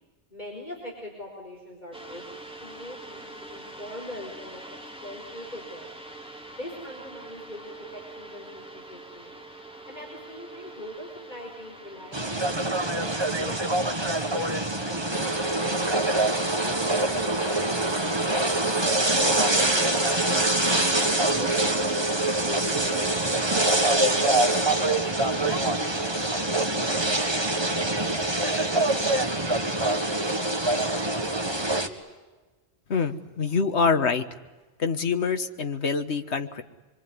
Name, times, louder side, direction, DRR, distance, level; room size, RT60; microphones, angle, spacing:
voice 1, 0.3-2.3 2.6-5.9 6.6-9.4 9.9-13.6 14.4-16.3 16.6-18.9 19.5-24.2, left 1 dB, 40° left, -1 dB, 5.2 m, -42 dB
sound 1, 1.9-16.6, right 2 dB, 5° right, 3.4 m, -45 dB
sound 2, 12.1-31.9, right 2 dB, 25° right, 1.8 m, -24 dB
voice 2, 32.9-34.2 34.8-36.6, left 5 dB, 75° left, 8 dB, 1.6 m, -25 dB
25.5 x 24.5 x 9.6 m, 1.2 s
omnidirectional pair, 1.2 m